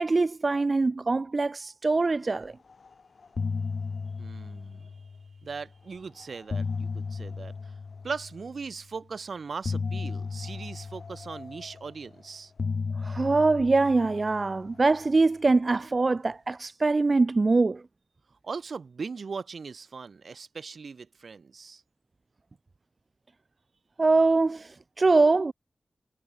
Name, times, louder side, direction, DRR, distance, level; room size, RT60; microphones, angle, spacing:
voice 1, 0.0-2.5 13.0-17.8 24.0-25.5, right 3 dB, 45° right, 0.8 m, -23 dB
sound 1, 2.7-2.9 3.2-5.5 6.2-8.6 9.6-12.1 12.6-15.2, left 4 dB, 70° left, 1.1 m, -35 dB
voice 2, 4.2-4.9 5.4-7.7 8.0-12.5 18.4-21.8, right 5 dB, 80° right, 5.5 m, -39 dB
wide cardioid pair, 90°, 0 cm